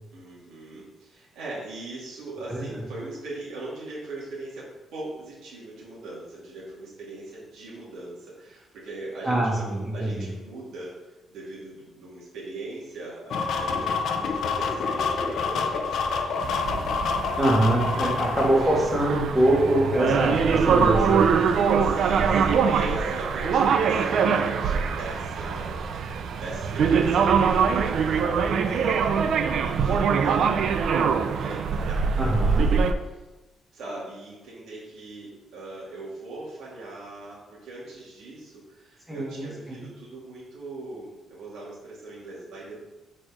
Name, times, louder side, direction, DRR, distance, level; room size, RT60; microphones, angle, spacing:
voice 1, 0.1-16.3 21.8-29.3 29.6-30.6 31.3-33.2 33.7-42.8, right 2 dB, 85° right, -6 dB, 2.4 m, -40 dB
voice 2, 9.2-10.3 17.4-21.5 32.2-32.6 39.1-39.8, right 1 dB, 10° right, -3 dB, 1.8 m, -24 dB
sound 1, 13.3-18.5, left 5 dB, 65° left, 0.6 m, -27 dB
sound 2, 16.4-32.9, right 6 dB, 60° right, 0.5 m, -23 dB
4.9 x 4.4 x 5.9 m, 1.1 s
cardioid pair, 150°, 0 cm